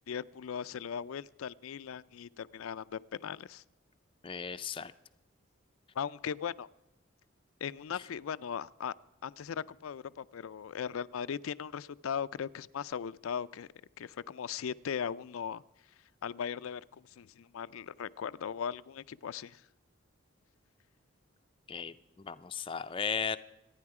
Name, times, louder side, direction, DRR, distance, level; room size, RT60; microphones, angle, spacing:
voice 1, 0.1-3.6 6.0-6.7 7.6-8.9 9.2-13.7 14.0-15.6 16.2-19.6, left 7 dB, 85° left, 15 dB, 0.4 m, -38 dB
voice 2, 4.2-4.9 21.7-23.4, left 6 dB, 25° left, 11 dB, 0.4 m, -36 dB
26.0 x 9.5 x 4.8 m, 0.93 s
head